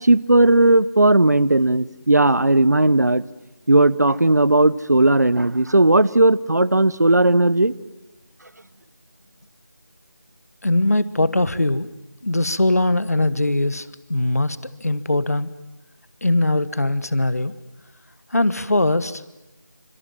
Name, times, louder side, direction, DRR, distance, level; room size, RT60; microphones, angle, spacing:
voice 1, 0.0-3.2 3.7-7.7, right 2 dB, 55° right, 19 dB, 0.9 m, -16 dB
voice 2, 10.6-11.9 12.2-15.5 16.2-17.5 18.3-19.2, left 2 dB, 50° left, 16 dB, 1.3 m, -21 dB
28.0 x 26.0 x 7.6 m, 1.0 s
figure-of-eight pair, 180°, 11 cm